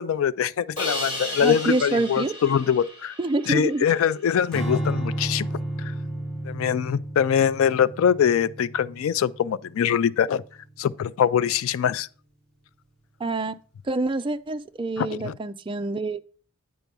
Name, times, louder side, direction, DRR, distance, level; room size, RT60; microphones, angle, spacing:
voice 1, 0.0-3.1 3.5-5.5 6.4-10.4 10.8-12.1 15.0-15.3, left 8 dB, 65° left, 0.3 m, -23 dB
Crash cymbal, 0.8-3.8, left 1 dB, 40° left, 4.2 m, -34 dB
voice 2, 1.4-2.3 3.2-3.8 13.2-13.5 13.9-16.2, right 2 dB, 25° right, 0.4 m, -26 dB
Strum, 4.5-10.9, right 1 dB, 5° left, 1.4 m, -32 dB
9.0 x 4.6 x 5.3 m
head